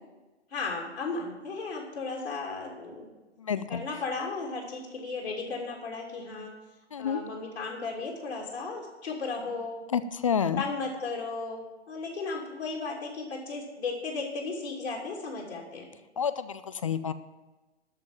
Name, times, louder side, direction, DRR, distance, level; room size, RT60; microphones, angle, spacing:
voice 1, 0.5-3.1 3.7-6.5 7.0-9.8 10.6-15.9, left 3 dB, 65° left, -2 dB, 2.9 m, -35 dB
voice 2, 3.4-3.8 6.9-7.2 9.9-10.6 16.2-17.1, left 7 dB, 30° left, 13 dB, 0.4 m, -29 dB
13.0 x 5.3 x 9.1 m, 1.1 s
figure-of-eight pair, 120°, 35 cm